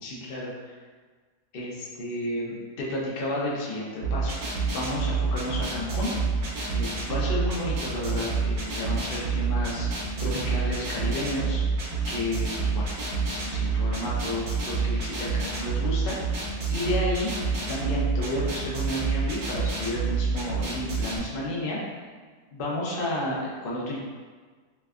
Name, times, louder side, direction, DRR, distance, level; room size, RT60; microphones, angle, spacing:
voice 1, 0.0-0.7 1.5-4.4 4.7-6.2 6.7-9.9 10.2-11.6 12.1-12.9 13.3-16.2 16.7-17.3 17.7-21.8 22.5-24.0, left 1 dB, 50° left, -5 dB, 0.7 m, -31 dB
sound 1, 4.0-21.2, right 4 dB, 70° right, 1.3 m, -28 dB
3.3 x 3.1 x 2.4 m, 1.5 s
omnidirectional pair, 1.7 m